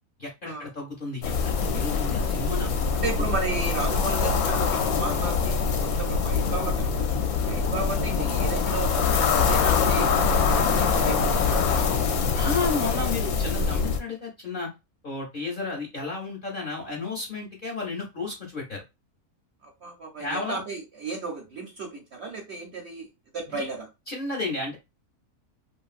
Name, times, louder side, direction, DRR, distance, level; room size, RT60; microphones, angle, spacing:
voice 1, 0.2-2.7 3.2-3.3 12.3-14.7 15.0-18.8 20.2-20.6 23.5-23.7 24.1-24.8, left 3 dB, 45° left, 0.8 m, -32 dB
sound 1, 1.2-14.0, left 5 dB, 75° left, 1.0 m, -24 dB
voice 2, 3.0-7.1 7.4-10.1 10.5-12.3 19.6-23.1 23.3-23.9, right 3 dB, 55° right, 0.8 m, -34 dB
2.9 x 2.6 x 2.4 m
omnidirectional pair, 1.6 m